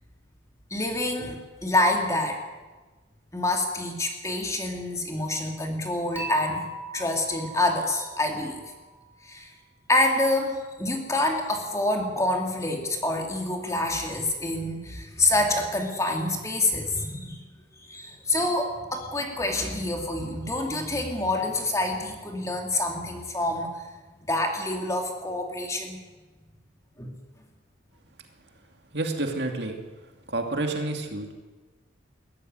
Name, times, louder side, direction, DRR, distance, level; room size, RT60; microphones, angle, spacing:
voice 1, 0.7-2.4 3.3-6.7 6.9-8.6 9.2-9.5 9.9-17.4 17.8-23.7 24.2-26.0 27.0-27.1, left 2 dB, 15° left, 2 dB, 2.7 m, -27 dB
Dishes pots and pans / Chink clink, 6.2-9.3, equal, 10° right, 4.2 m, -39 dB
voice 2, 28.9-29.8 30.3-31.3, right 2 dB, 55° right, 4 dB, 2.6 m, -29 dB
21.5 x 13.5 x 9.6 m, 1.3 s
head